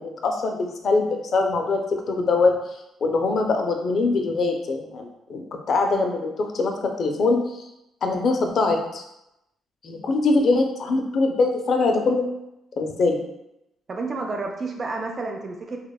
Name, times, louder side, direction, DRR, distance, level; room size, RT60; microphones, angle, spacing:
voice 1, 0.0-2.6 3.0-6.7 7.0-7.7 8.0-9.0 9.8-12.2 12.8-13.2, left 3 dB, 55° left, 3 dB, 0.4 m, -23 dB
voice 2, 13.9-15.8, right 3 dB, 40° right, 3 dB, 0.3 m, -30 dB
2.8 x 2.0 x 2.2 m, 0.86 s
cardioid pair, 90°, 0 cm